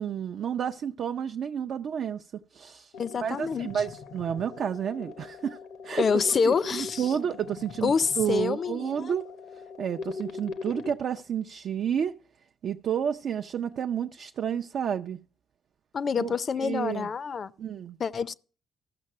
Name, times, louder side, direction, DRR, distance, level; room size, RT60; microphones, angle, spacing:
voice 1, 0.0-2.2 2.5-2.9 3.2-5.6 5.8-6.1 6.4-9.3 9.8-12.1 12.6-15.2 16.2-16.3 16.6-17.1 17.6-18.0, right 8 dB, 65° right, 0.4 m, -30 dB
sound 1, 2.9-10.9, left 4 dB, 85° left, 0.9 m, -41 dB
voice 2, 3.0-3.7 6.0-7.1 7.8-9.1 15.9-17.5 18.0-18.3, left 5 dB, 45° left, 0.5 m, -27 dB
13.5 x 5.9 x 6.5 m
cardioid pair, 90°, 0 cm